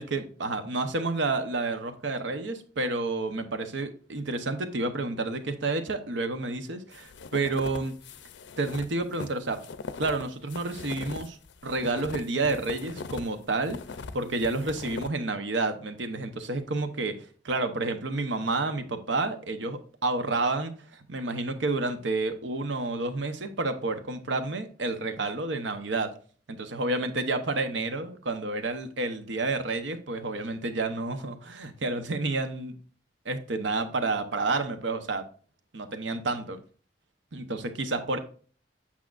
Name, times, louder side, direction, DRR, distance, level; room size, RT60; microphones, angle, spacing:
voice 1, 0.0-7.9 8.6-9.6 10.0-11.4 11.6-13.8 14.1-26.1 26.5-32.8 33.2-35.2 35.7-36.6 37.3-38.2, right 3 dB, 90° right, 0.9 m, -30 dB
sound 1, 6.9-13.3 13.6-15.1, left 4 dB, 75° left, 0.5 m, -40 dB
8.3 x 5.8 x 2.5 m
head